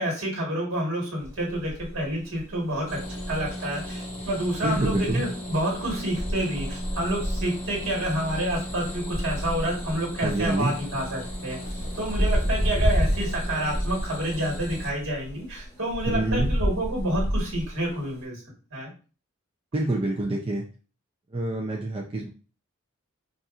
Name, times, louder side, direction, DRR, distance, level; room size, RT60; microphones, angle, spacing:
voice 1, 0.0-11.6 11.9-18.4 18.7-18.9, right 1 dB, 65° right, -2 dB, 1.5 m, -29 dB
sound 1, 1.2-18.2, equal, 15° left, 1.0 m, -31 dB
sound 2, 2.9-14.9, equal, 35° left, 1.8 m, -37 dB
voice 2, 4.6-5.2 10.2-10.7 16.1-16.5 19.7-20.6 21.3-22.3, right 2 dB, 25° right, -1 dB, 0.5 m, -26 dB
sound 3, 8.5-13.3, equal, 90° left, 1.2 m, -41 dB
4.1 x 2.5 x 2.5 m, 0.36 s
head